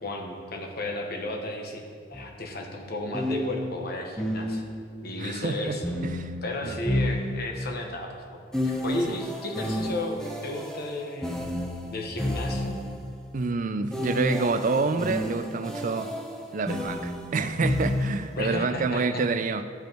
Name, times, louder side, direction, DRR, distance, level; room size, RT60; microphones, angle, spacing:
voice 1, 0.0-4.6 5.0-5.8 6.4-11.5 11.9-12.8 18.4-19.2, left 2 dB, 50° left, 2 dB, 1.1 m, -34 dB
sound 1, 2.1-2.3 3.1-4.9 5.8-7.7 8.5-13.0 13.9-18.4, left 1 dB, 5° left, 0.8 m, -31 dB
voice 2, 5.2-5.8 6.0-6.3 6.6-6.8 9.1-9.2 13.3-16.1 16.5-19.6, right 4 dB, 40° right, 10 dB, 0.4 m, -27 dB
14.5 x 5.1 x 4.6 m, 2.2 s
head